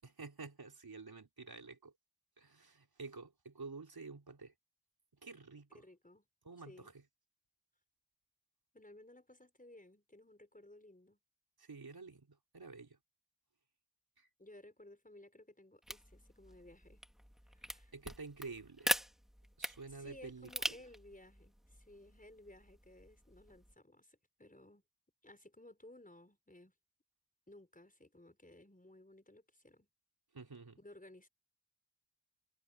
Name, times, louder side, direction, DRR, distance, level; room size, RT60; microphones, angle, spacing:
voice 1, 0.0-1.9 2.4-4.5 5.2-5.8 6.4-6.9 11.6-13.0 14.2-14.3 17.9-18.9 19.6-20.5 30.3-30.8, right 4 dB, 60° right, 4.1 m, -50 dB
voice 2, 5.7-6.3 6.6-6.9 8.7-11.2 14.4-17.0 17.5-17.9 19.9-24.8 25.2-26.7 27.5-29.9 30.8-31.3, left 1 dB, 20° left, 5.5 m, -58 dB
sound 1, 15.8-23.7, equal, ahead, 1.6 m, -43 dB
cardioid pair, 55°, 42 cm